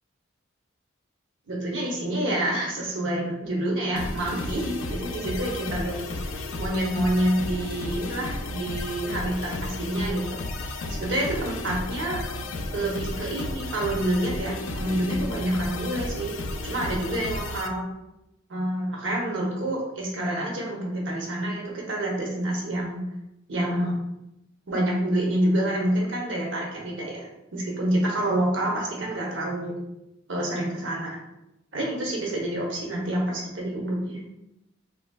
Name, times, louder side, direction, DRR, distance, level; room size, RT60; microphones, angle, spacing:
voice 1, 1.5-12.2 12.7-16.4 16.6-17.8 18.5-23.0 23.5-24.0 24.7-29.7 30.3-31.2 31.7-34.2, right 1 dB, 70° right, -2 dB, 0.8 m, -28 dB
sound 1, 4.0-17.7, left 2 dB, 85° left, 0.4 m, -33 dB
3.8 x 3.1 x 2.2 m, 0.89 s
head